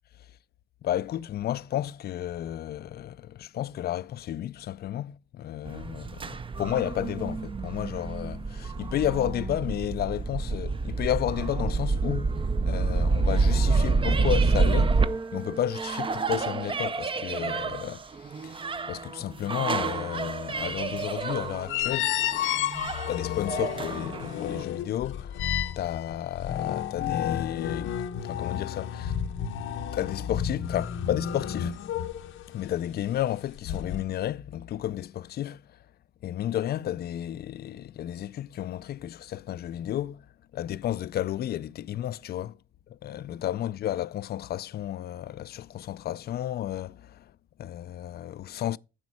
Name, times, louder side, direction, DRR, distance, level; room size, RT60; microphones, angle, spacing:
voice 1, 0.8-15.0 15.3-22.2 23.1-29.2 29.9-31.8 32.5-35.8 36.2-40.3 40.5-42.6 42.9-47.3 47.6-48.8, left 12 dB, 55° left, 0.4 m, -32 dB
sound 1, 5.6-24.6, right 4 dB, 25° right, 0.6 m, -28 dB
sound 2, 20.6-20.8 21.7-32.7 33.6-34.0, left 10 dB, 85° left, 0.9 m, -31 dB
9.7 x 7.0 x 4.7 m
cardioid pair, 90°, 20 cm